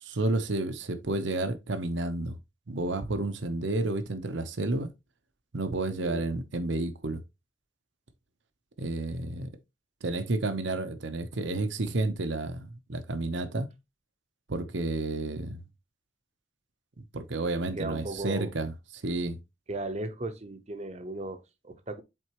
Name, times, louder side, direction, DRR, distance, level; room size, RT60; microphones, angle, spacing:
voice 1, 0.0-2.4 2.7-4.9 5.5-7.2 8.8-9.5 10.0-13.7 14.5-15.6 17.1-18.7 19.0-19.4, right 2 dB, 75° right, 0.8 m, -31 dB
voice 2, 17.8-18.5 19.7-22.0, right 2 dB, 35° right, 0.8 m, -36 dB
7.8 x 4.1 x 2.9 m
head